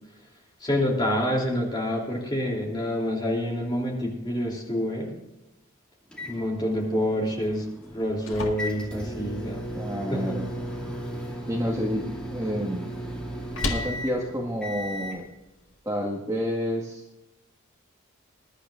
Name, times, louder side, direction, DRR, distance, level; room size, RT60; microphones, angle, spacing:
voice 1, 0.6-5.2 6.3-9.6 10.1-10.4, equal, 20° left, -1 dB, 3.1 m, -27 dB
sound 1, 6.1-15.2, equal, 5° left, 2.3 m, -36 dB
sound 2, 7.8-15.8, left 2 dB, 75° left, 1.8 m, -39 dB
voice 2, 9.7-10.5 11.5-12.8 13.6-15.3 15.8-17.0, equal, 15° right, -3 dB, 1.7 m, -29 dB
21.0 x 11.5 x 2.5 m, 0.98 s
head